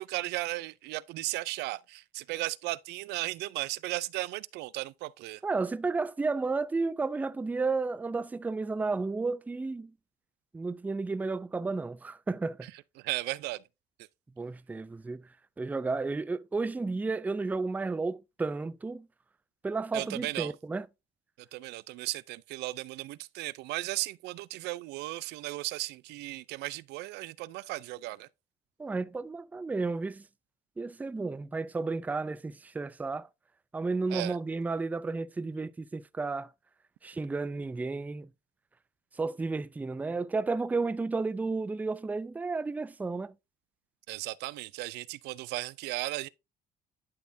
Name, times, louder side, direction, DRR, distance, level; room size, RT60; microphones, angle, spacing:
voice 1, 0.0-5.4 12.6-12.7 13.0-13.6 19.9-20.5 21.5-28.3 34.1-34.4 44.1-46.3, right 19 dB, 85° right, 0.4 m, -36 dB
voice 2, 5.4-9.9 10.5-12.7 14.4-15.2 15.6-19.1 19.6-20.9 28.8-30.2 30.8-33.3 33.7-36.5 37.0-38.3 39.2-43.3, right 3 dB, 10° right, 0.3 m, -32 dB
11.5 x 4.2 x 2.6 m
cardioid pair, 110°, 17 cm